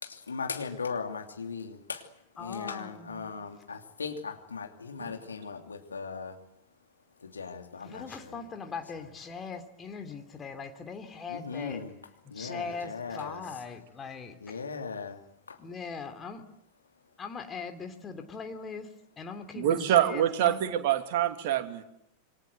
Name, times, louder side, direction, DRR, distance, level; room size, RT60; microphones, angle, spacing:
voice 1, 0.0-6.4 7.2-8.4 8.9-9.1 11.3-12.0 12.3-13.4 14.4-15.6, left 5 dB, 75° left, 4 dB, 2.9 m, -38 dB
voice 2, 2.4-3.3 7.8-11.8 12.3-14.3 15.6-16.4 17.2-18.9 19.2-20.8, left 5 dB, 20° left, 6 dB, 3.1 m, -40 dB
voice 3, 19.5-21.8, right 11 dB, 50° right, 7 dB, 2.6 m, -26 dB
27.5 x 24.0 x 8.0 m, 0.79 s
figure-of-eight pair, 90°, 0 cm